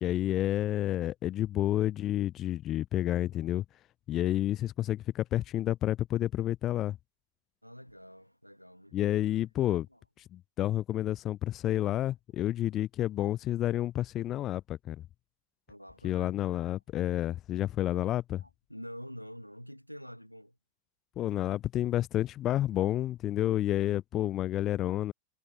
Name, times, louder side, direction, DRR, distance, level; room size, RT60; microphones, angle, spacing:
voice 1, 0.0-3.6 4.1-7.0 8.9-9.9 10.2-15.0 16.0-18.4 21.2-25.1, left 13 dB, 30° left, 0.7 m, -30 dB
voice 2, 7.6-9.4 9.9-10.0 15.7-16.8 18.4-20.6, equal, 90° left, 3.2 m, -47 dB
figure-of-eight pair, 90°, 0 cm